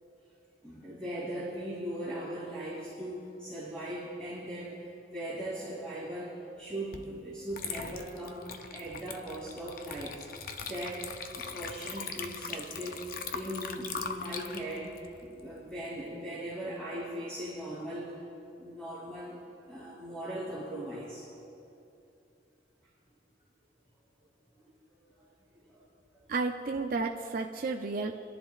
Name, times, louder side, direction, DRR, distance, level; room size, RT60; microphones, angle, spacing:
voice 1, 0.6-10.3 10.6-14.9 15.2-18.2 18.6-19.4 19.7-21.3 25.0-25.1 25.7-25.8, right 1 dB, 5° left, -9 dB, 2.8 m, -39 dB
Water / Liquid, 6.9-7.1 7.5-16.1, left 5 dB, 50° left, 0.7 m, -41 dB
voice 2, 26.3-28.3, right 3 dB, 50° right, 2 dB, 0.5 m, -32 dB
27.5 x 11.0 x 2.4 m, 2.7 s
head